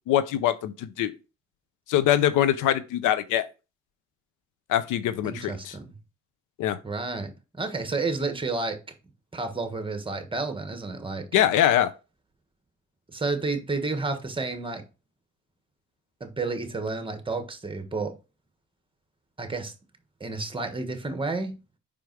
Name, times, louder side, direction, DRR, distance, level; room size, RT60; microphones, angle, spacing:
voice 1, 0.1-1.1 1.9-3.5 4.7-5.7 6.6-6.8 11.3-11.9, left 11 dB, 90° left, 0.7 m, -23 dB
voice 2, 5.2-6.0 6.8-8.8 9.3-11.3 13.1-14.8 16.2-18.2 19.4-19.7 20.2-21.6, right 3 dB, 15° right, 1.4 m, -31 dB
5.3 x 5.0 x 4.6 m
cardioid pair, 90°, 30 cm